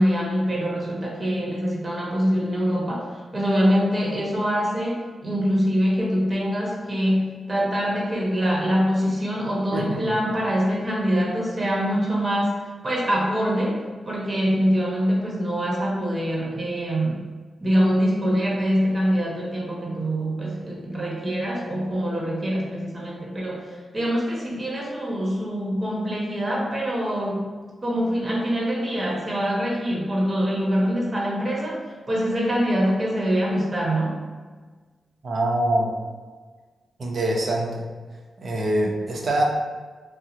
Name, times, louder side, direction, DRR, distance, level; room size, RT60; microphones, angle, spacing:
voice 1, 0.0-13.8 14.0-17.3 17.6-27.5 27.8-31.8 32.1-34.2, equal, 30° right, -4 dB, 1.0 m, -24 dB
voice 2, 35.2-35.9 37.0-37.9 38.4-39.4, right 1 dB, 55° right, -1 dB, 0.6 m, -24 dB
2.8 x 2.0 x 3.8 m, 1.4 s
cardioid pair, 60°, 0 cm